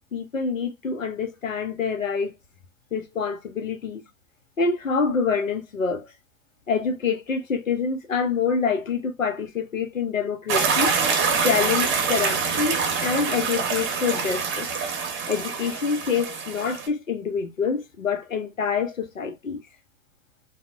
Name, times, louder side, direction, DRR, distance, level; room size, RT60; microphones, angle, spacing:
voice 1, 0.1-2.3 2.9-4.0 4.6-6.1 6.7-10.9 11.4-14.7 15.3-19.6, left 5 dB, 85° left, 0.6 m, -26 dB
sound 1, 10.5-16.9, right 5 dB, 30° right, 0.7 m, -25 dB
2.7 x 2.0 x 2.3 m
figure-of-eight pair, 90°, 39 cm